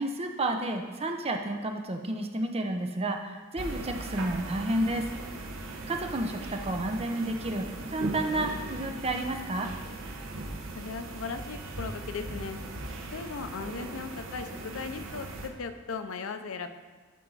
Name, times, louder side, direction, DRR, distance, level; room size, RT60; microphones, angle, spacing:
voice 1, 0.0-5.1 5.9-9.7, right 1 dB, 30° right, 4 dB, 0.7 m, -31 dB
sound 1, 3.6-15.5, right 2 dB, 65° right, 1.0 m, -39 dB
voice 2, 10.7-12.6 13.1-16.7, left 5 dB, 70° left, 9 dB, 0.6 m, -37 dB
12.0 x 4.6 x 4.0 m, 1.4 s
head